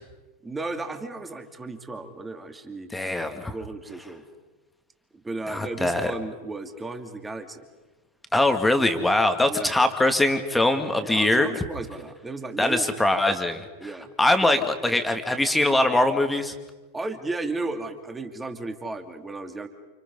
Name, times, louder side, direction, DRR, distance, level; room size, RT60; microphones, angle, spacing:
voice 1, 0.4-2.9 3.5-4.2 5.1-7.6 9.5-9.7 11.0-12.9 13.8-14.1 14.5-15.0 16.9-19.7, right 2 dB, 10° right, 6 dB, 2.7 m, -34 dB
voice 2, 2.9-3.5 5.5-6.1 8.3-11.5 12.6-13.6 14.2-16.5, left 2 dB, 5° left, 7 dB, 2.3 m, -22 dB
29.5 x 29.0 x 5.5 m, 1.2 s
figure-of-eight pair, 90°, 0 cm